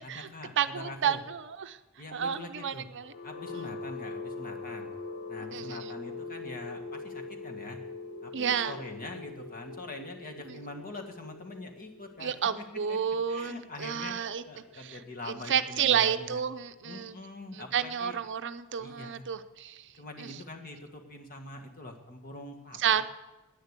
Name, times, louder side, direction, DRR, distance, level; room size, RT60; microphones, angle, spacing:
voice 1, 0.0-1.2 2.0-2.9 3.2-4.9 5.3-7.8 8.2-13.0 13.3-16.4 16.8-18.2 18.8-19.3 20.0-23.0, left 2 dB, 40° left, 3 dB, 1.7 m, -44 dB
voice 2, 0.6-1.8 2.1-3.1 5.5-5.9 8.3-8.7 12.2-14.4 15.3-17.2 17.5-19.8 20.2-20.3 22.8-23.0, right 8 dB, 55° right, 10 dB, 0.6 m, -30 dB
sound 1, 2.9-16.8, left 3 dB, 65° left, 1.2 m, -43 dB
10.5 x 9.9 x 8.1 m, 1.1 s
head